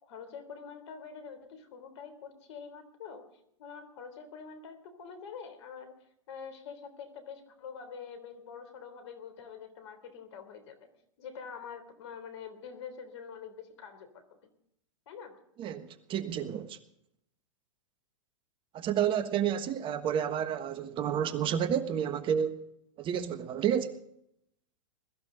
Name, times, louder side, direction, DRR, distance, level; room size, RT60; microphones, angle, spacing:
voice 1, 0.0-3.3 3.6-10.9 11.2-14.5 15.1-15.4, left 6 dB, 60° left, 3.5 m, -46 dB
voice 2, 15.6-16.8 18.7-22.6 23.0-24.0, right 9 dB, 30° right, 1.3 m, -30 dB
21.5 x 14.0 x 4.0 m
hypercardioid pair, 110°, 16 cm